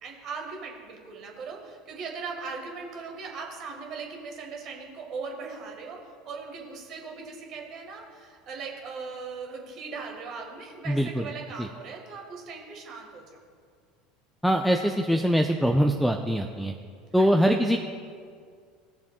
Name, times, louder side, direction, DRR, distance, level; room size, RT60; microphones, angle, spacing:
voice 1, 0.0-13.2 17.2-17.3, right 4 dB, 45° right, 1 dB, 1.7 m, -39 dB
voice 2, 10.9-11.2 11.6-11.7 14.4-16.7 17.1-17.8, equal, ahead, 3 dB, 0.5 m, -23 dB
16.5 x 6.9 x 2.4 m, 2.1 s
figure-of-eight pair, 70°, 0 cm